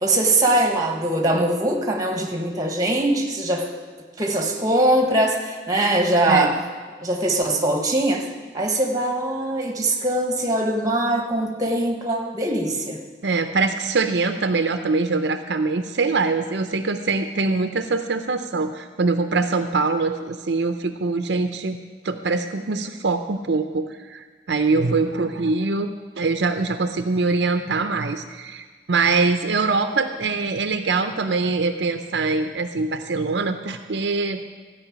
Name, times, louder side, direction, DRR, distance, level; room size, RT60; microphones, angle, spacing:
voice 1, 0.0-3.7 4.2-6.6 7.0-8.3 8.5-13.0, right 1 dB, 20° right, 3 dB, 1.3 m, -22 dB
voice 2, 13.2-21.8 22.0-34.6, right 3 dB, 70° right, 7 dB, 0.6 m, -23 dB
14.0 x 5.5 x 8.5 m, 1.5 s
head